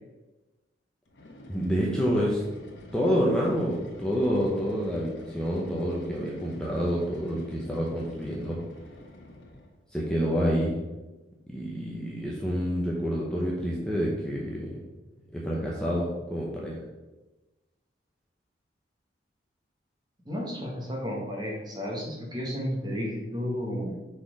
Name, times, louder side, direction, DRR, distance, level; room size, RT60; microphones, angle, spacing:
sound 1, 1.1-9.8, left 1 dB, 75° left, 1.2 m, -48 dB
voice 1, 1.5-2.4 2.9-8.6 9.9-10.8 11.5-14.8 15.3-16.8, equal, 5° left, -5 dB, 0.9 m, -28 dB
voice 2, 20.2-24.0, equal, 20° right, -2 dB, 1.4 m, -32 dB
6.0 x 4.3 x 4.9 m, 1.1 s
head